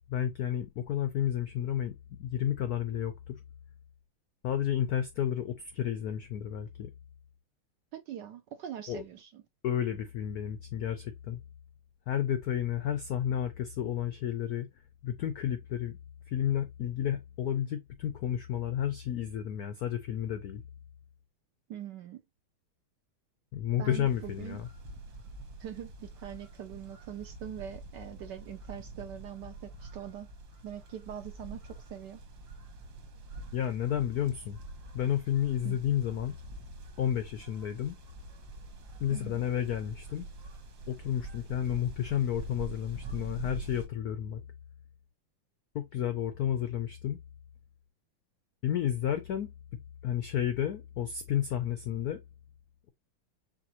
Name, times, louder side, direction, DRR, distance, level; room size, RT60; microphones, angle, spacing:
voice 1, 0.1-3.4 4.4-6.9 8.9-9.0 9.6-11.4 12.1-14.7 15.0-16.0 16.3-20.6 23.5-24.7 33.5-34.6 34.9-36.4 37.0-38.0 39.0-40.3 40.9-44.4 45.7-47.2 48.6-49.5 50.0-52.2, left 10 dB, 80° left, 0.8 m, -31 dB
voice 2, 7.9-9.4 21.7-22.2 23.8-24.6 25.6-30.3 30.6-32.2 35.6-35.8 39.1-39.5, right 10 dB, 75° right, 1.0 m, -43 dB
sound 1, 24.0-43.9, right 2 dB, 55° right, 1.5 m, -46 dB
5.1 x 3.6 x 2.8 m
omnidirectional pair, 2.3 m